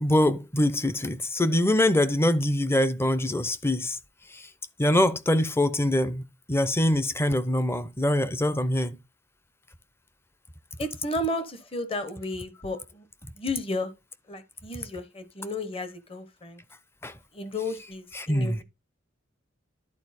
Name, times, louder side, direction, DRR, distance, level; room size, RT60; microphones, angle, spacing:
voice 1, 0.0-4.0 4.3-4.5 4.8-6.2 6.5-9.0 17.0-17.1 18.1-18.6, left 1 dB, 15° left, 0.6 m, -24 dB
voice 2, 10.8-13.0 13.4-13.9 14.3-16.6 17.3-18.6, left 2 dB, 30° left, 1.0 m, -33 dB
11.0 x 4.3 x 4.2 m
head